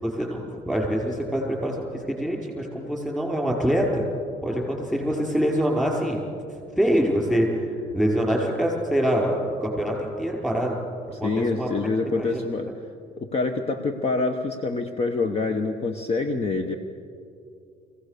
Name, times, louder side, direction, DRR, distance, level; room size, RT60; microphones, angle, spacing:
voice 1, 0.0-4.0 4.4-6.3 6.8-10.8 11.2-12.4 12.7-12.8, equal, 5° left, 0 dB, 5.3 m, -25 dB
voice 2, 11.2-12.7 13.2-16.8, left 3 dB, 35° left, 7 dB, 1.1 m, -26 dB
23.5 x 16.5 x 6.8 m, 2.5 s
cardioid pair, 110°, 17 cm